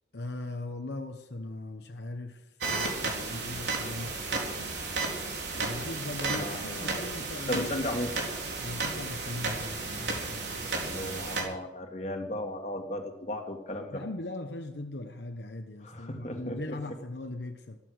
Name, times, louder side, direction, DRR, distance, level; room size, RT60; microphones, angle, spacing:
voice 1, 0.1-2.4 2.7-5.0 5.5-7.9 8.6-10.7 13.9-17.8, left 2 dB, 70° left, 5 dB, 1.0 m, -39 dB
sound 1, 2.6-11.4, right 3 dB, 75° right, 4.1 m, -33 dB
voice 2, 6.3-7.0 7.5-8.1 10.6-14.0 15.8-17.0, left 1 dB, 40° left, 2 dB, 2.2 m, -36 dB
15.0 x 14.0 x 6.4 m, 0.92 s
head